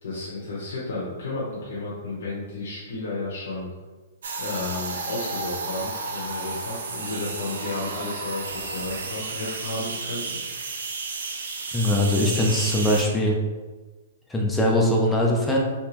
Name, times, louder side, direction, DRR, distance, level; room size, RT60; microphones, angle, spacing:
voice 1, 0.0-3.7 4.4-10.4, left 2 dB, 70° left, -6 dB, 0.9 m, -32 dB
sound 1, 4.2-13.0, right 3 dB, 75° right, 0.6 m, -32 dB
voice 2, 11.7-13.4 14.3-15.6, left 1 dB, 5° left, -2 dB, 0.4 m, -21 dB
3.6 x 2.9 x 2.9 m, 1.3 s
hypercardioid pair, 170°, 0 cm